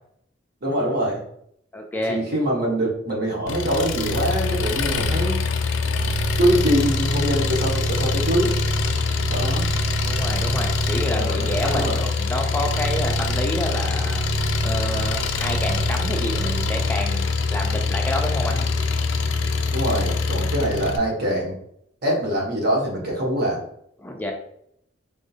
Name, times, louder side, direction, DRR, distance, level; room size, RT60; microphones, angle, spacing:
voice 1, 0.6-1.2 2.1-5.4 6.4-8.5 9.3-9.7 11.1-12.0 19.7-21.6 22.0-23.6, equal, 60° right, -2 dB, 1.1 m, -23 dB
voice 2, 1.7-2.2 10.1-14.2 14.6-17.3 17.5-18.7 24.0-24.3, left 1 dB, 10° left, 2 dB, 0.3 m, -28 dB
Engine, 3.5-21.0, left 3 dB, 80° left, 0.4 m, -23 dB
3.6 x 2.5 x 2.7 m, 0.71 s
head